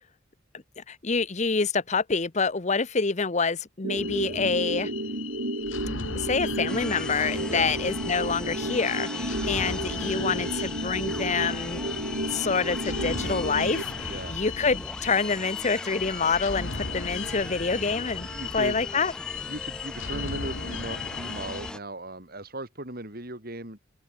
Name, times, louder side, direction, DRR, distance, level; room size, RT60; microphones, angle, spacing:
voice 1, 0.8-4.9 6.2-11.8 12.3-18.3 18.5-19.1, left 4 dB, 35° left, 0.9 m, -27 dB
sound 1, 3.8-13.8, right 1 dB, 65° right, 3.7 m, -32 dB
sound 2, 4.0-21.7, left 6 dB, 75° left, 2.5 m, -36 dB
voice 2, 4.2-4.5 7.5-7.7 9.9-10.1 14.0-14.4 18.3-18.8 19.5-23.8, right 1 dB, 50° right, 5.0 m, -37 dB
sound 3, 6.7-21.8, left 1 dB, 5° left, 2.5 m, -39 dB
open air
head